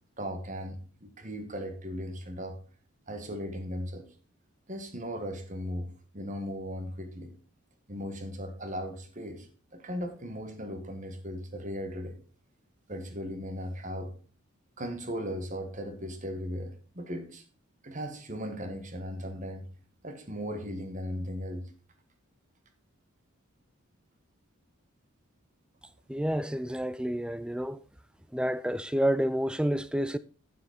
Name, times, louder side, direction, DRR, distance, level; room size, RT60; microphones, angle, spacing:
voice 1, 0.2-2.6 3.1-4.1 4.7-7.3 7.9-9.5 9.7-12.2 12.9-14.1 14.8-17.4 17.8-19.7 20.0-21.7, equal, 35° right, 1.7 m, -37 dB
voice 2, 26.1-27.8 28.3-30.2, equal, 5° right, 0.3 m, -29 dB
9.5 x 7.5 x 4.3 m
head